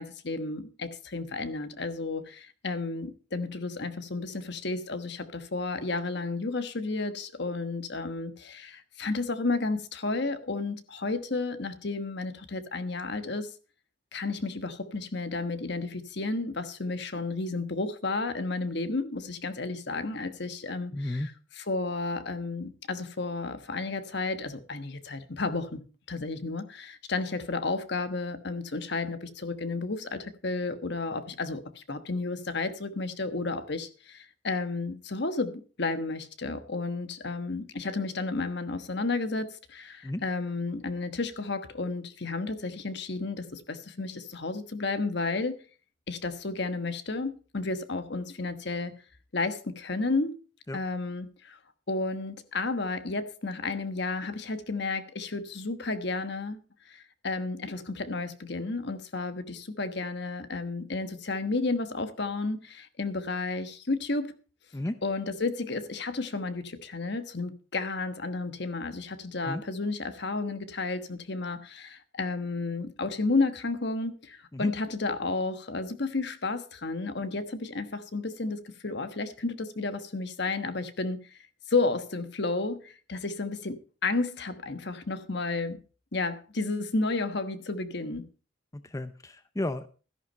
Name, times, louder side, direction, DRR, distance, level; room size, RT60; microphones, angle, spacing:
voice 1, 0.0-13.6 14.1-21.3 21.6-25.8 26.1-45.6 46.1-48.9 49.3-50.4 50.7-51.6 51.9-64.4 65.0-81.4 81.7-85.8 86.1-88.2, left 3 dB, 60° left, 1.3 m, -32 dB
voice 2, 20.9-21.3 40.0-40.2 50.7-50.8 64.7-65.0 69.5-69.6 74.5-74.7 88.7-89.9, left 1 dB, 15° left, 0.6 m, -33 dB
13.5 x 11.0 x 4.3 m
head